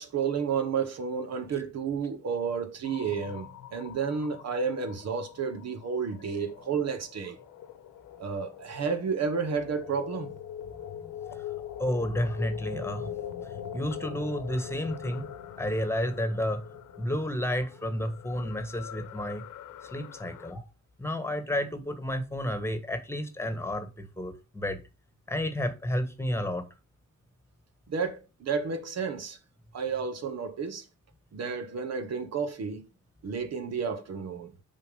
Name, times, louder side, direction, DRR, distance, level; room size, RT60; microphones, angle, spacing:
voice 1, 0.0-7.4 8.2-10.3 27.9-29.4 29.7-30.8 31.3-32.8 33.2-34.5, right 6 dB, 60° right, 1.3 m, -31 dB
sound 1, 2.8-20.5, left 9 dB, 85° left, 1.2 m, -43 dB
voice 2, 11.8-13.1 13.7-15.3 15.6-16.6 17.0-19.4 19.9-20.7 21.0-24.8 25.3-26.7, left 1 dB, 10° left, 1.5 m, -31 dB
6.9 x 4.3 x 5.4 m
cardioid pair, 90°, 30 cm